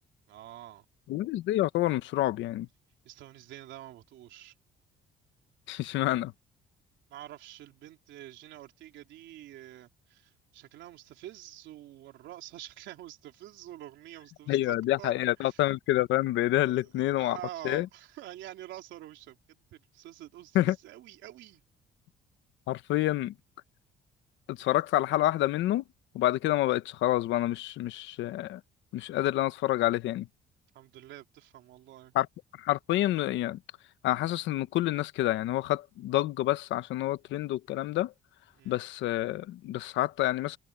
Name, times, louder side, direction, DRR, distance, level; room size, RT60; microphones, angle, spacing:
voice 1, 0.3-0.8 3.0-4.5 7.1-15.1 15.5-15.6 16.6-21.6 30.7-32.1 38.6-38.8, right 13 dB, 85° right, 3.4 m, -47 dB
voice 2, 1.1-2.7 5.7-6.3 14.5-17.4 17.6-17.9 20.5-20.8 22.7-23.3 24.5-25.8 26.1-28.6 28.9-30.3 32.1-32.3 32.6-33.6 34.0-38.1 38.6-40.6, left 15 dB, 85° left, 1.0 m, -28 dB
cardioid pair, 175°, 19 cm